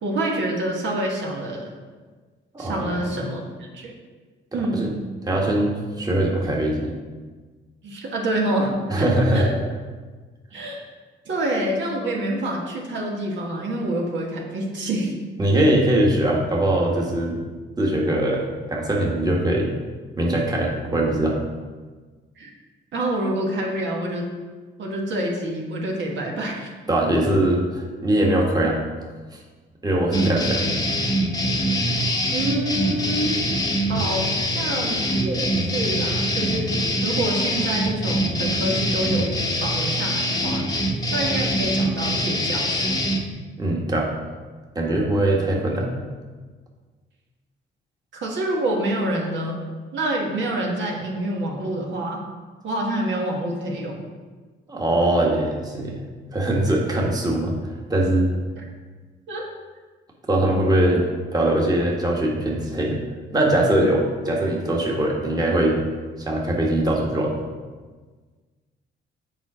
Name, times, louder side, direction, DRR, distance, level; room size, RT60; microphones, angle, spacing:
voice 1, 0.0-1.7 2.6-3.9 4.5-4.8 7.8-9.5 10.5-10.9 11.2-15.1 22.4-22.5 22.9-24.3 24.8-26.7 32.3-33.4 33.9-36.7 37.0-40.6 41.1-43.0 48.1-49.5 49.9-52.2 52.6-54.0 58.6-58.7 59.3-59.4 60.9-61.0, right 1 dB, 70° right, -1 dB, 1.5 m, -27 dB
voice 2, 2.5-3.1 4.7-4.9 5.2-6.9 8.9-9.5 15.4-17.4 17.8-19.7 20.2-21.4 26.9-28.8 29.8-30.7 43.6-44.1 44.7-46.0 54.7-56.0 56.3-57.5 57.9-58.3 60.3-61.0 61.3-63.0 63.3-65.8 66.2-67.4, right 1 dB, 20° right, -2 dB, 1.5 m, -21 dB
sound 1, 30.1-43.2, equal, 20° left, 0.9 m, -24 dB
7.3 x 4.6 x 4.9 m, 1.4 s
cardioid pair, 90°, 20 cm